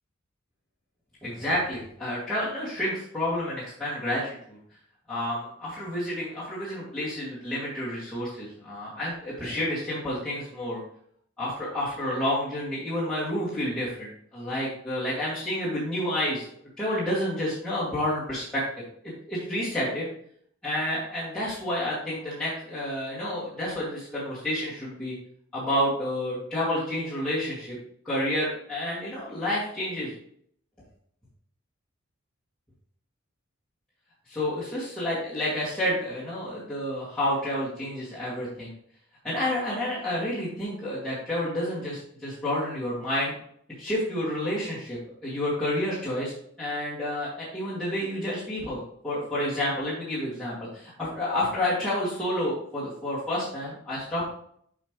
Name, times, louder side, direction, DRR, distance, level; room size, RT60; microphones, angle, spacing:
voice 1, 1.2-4.6 5.1-10.8 11.4-16.5 16.8-18.6 19.3-20.1 20.6-25.1 25.5-27.8 28.0-30.1 34.3-38.7 39.2-43.3 43.8-46.3 46.6-54.3, left 1 dB, 5° left, -12 dB, 2.4 m, -29 dB
8.0 x 5.2 x 3.2 m, 0.65 s
head